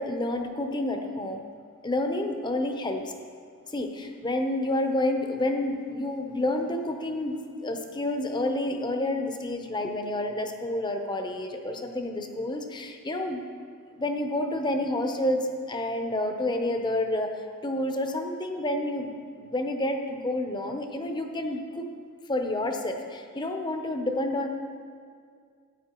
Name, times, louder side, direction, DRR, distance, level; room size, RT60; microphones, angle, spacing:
voice 1, 0.0-1.4 1.8-3.1 3.7-13.4 14.0-17.3 17.6-21.9 22.3-24.5, left 1 dB, 20° left, 5 dB, 0.7 m, -29 dB
14.0 x 9.2 x 3.0 m, 2.1 s
head